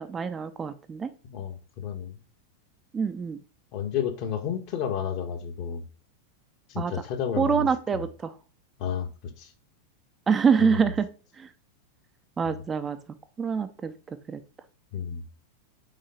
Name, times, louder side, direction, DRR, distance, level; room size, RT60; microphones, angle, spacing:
voice 1, 0.0-1.1 2.9-3.4 6.8-6.9 7.4-8.4 10.3-11.1 11.3-11.5 12.4-13.0 13.4-14.4, right 6 dB, 20° right, 10 dB, 0.6 m, -26 dB
voice 2, 1.2-2.2 3.7-5.8 6.7-7.7 7.9-8.0 8.8-9.5 14.9-15.2, left 8 dB, 45° left, 5 dB, 1.3 m, -31 dB
5.7 x 4.7 x 5.0 m, 0.35 s
figure-of-eight pair, 90°, 0 cm